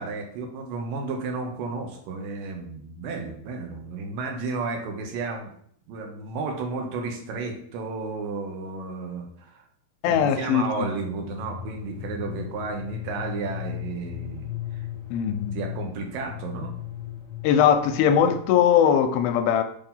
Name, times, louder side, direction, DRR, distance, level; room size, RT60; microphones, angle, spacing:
voice 1, 0.0-5.5 5.9-9.6 10.0-14.9 15.6-16.7, right 4 dB, 75° right, 2 dB, 2.4 m, -32 dB
voice 2, 10.0-10.9 15.1-15.6 17.4-19.6, left 8 dB, 80° left, 7 dB, 2.3 m, -20 dB
sound 1, 10.8-18.7, left 12 dB, 45° left, 1.8 m, -37 dB
6.9 x 2.9 x 5.5 m, 0.64 s
omnidirectional pair, 4.4 m